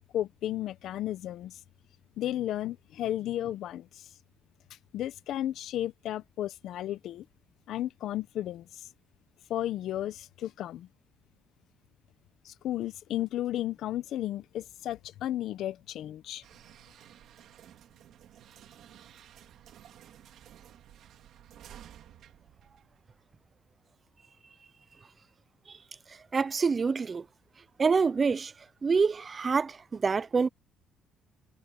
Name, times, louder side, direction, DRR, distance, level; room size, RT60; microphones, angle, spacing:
voice 1, 0.1-1.5 2.2-3.9 4.9-7.2 7.7-8.7 9.5-10.9 12.4-16.4, left 12 dB, 65° left, 0.8 m, -33 dB
sound 1, 16.4-23.4, right 11 dB, 65° right, 3.2 m, -54 dB
voice 2, 26.3-27.2 27.8-28.5 28.8-30.5, right 5 dB, 25° right, 0.5 m, -26 dB
cardioid pair, 155°, 0 cm